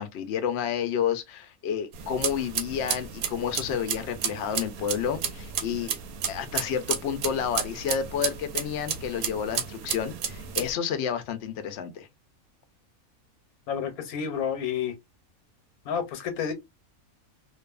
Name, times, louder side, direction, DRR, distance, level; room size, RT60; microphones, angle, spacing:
voice 1, 0.0-5.9 6.3-12.1, left 8 dB, 65° left, 0.7 m, -30 dB
sound 1, 1.9-10.7, right 8 dB, 85° right, 1.1 m, -33 dB
voice 2, 13.7-14.9 15.9-16.5, left 7 dB, 85° left, 1.1 m, -30 dB
2.6 x 2.4 x 2.3 m
omnidirectional pair, 1.5 m